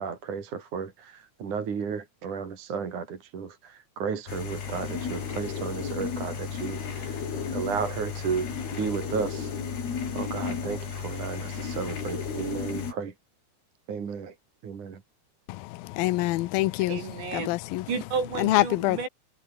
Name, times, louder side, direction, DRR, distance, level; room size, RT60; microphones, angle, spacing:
voice 1, 0.0-7.2 7.5-9.5 10.1-13.1 13.9-14.4 14.6-15.0, right 6 dB, 45° right, 4.3 m, -33 dB
sound 1, 4.3-12.9, left 6 dB, 60° left, 6.4 m, -33 dB
voice 2, 15.5-17.0 17.3-17.9 18.4-19.1, left 19 dB, 80° left, 2.2 m, -26 dB
voice 3, 16.9-17.5 17.9-19.1, right 5 dB, 75° right, 8.9 m, -31 dB
omnidirectional pair, 5.1 m